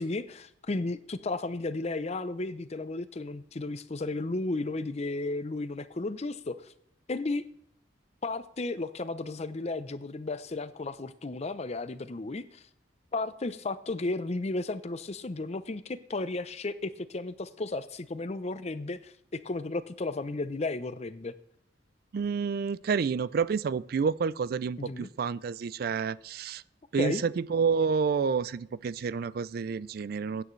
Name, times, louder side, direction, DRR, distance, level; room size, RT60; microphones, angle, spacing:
voice 1, 0.0-6.7 7.1-7.4 8.2-12.6 13.1-21.3 24.8-25.1 27.0-27.2, left 2 dB, 35° left, 13 dB, 0.6 m, -34 dB
voice 2, 22.1-26.6 26.9-30.4, right 5 dB, 55° right, 19 dB, 0.4 m, -29 dB
15.5 x 9.0 x 3.2 m, 0.71 s
head